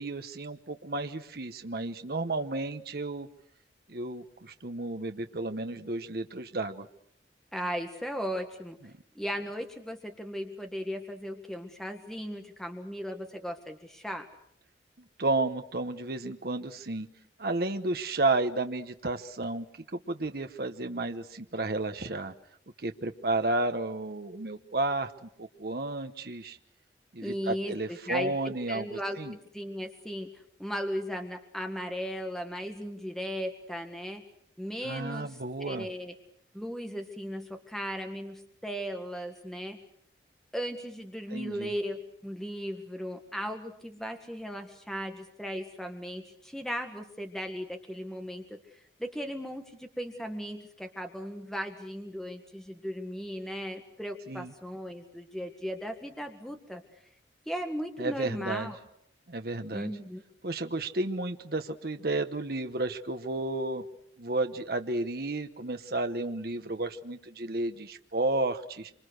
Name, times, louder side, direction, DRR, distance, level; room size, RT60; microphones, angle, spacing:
voice 1, 0.0-3.3 3.9-6.9 15.2-17.1 17.4-19.7 19.9-22.3 22.8-26.6 27.1-29.3 34.8-35.9 41.3-41.7 54.3-54.5 58.0-58.7 59.3-59.9 60.4-63.9 64.2-68.9, right 2 dB, 55° right, 7 dB, 1.0 m, -32 dB
voice 2, 7.5-8.8 9.1-14.3 27.2-30.3 30.6-34.2 34.6-36.1 36.5-39.8 40.5-56.8 57.4-58.8 59.7-60.2, equal, ahead, 5 dB, 1.7 m, -37 dB
26.5 x 25.5 x 6.5 m, 0.70 s
head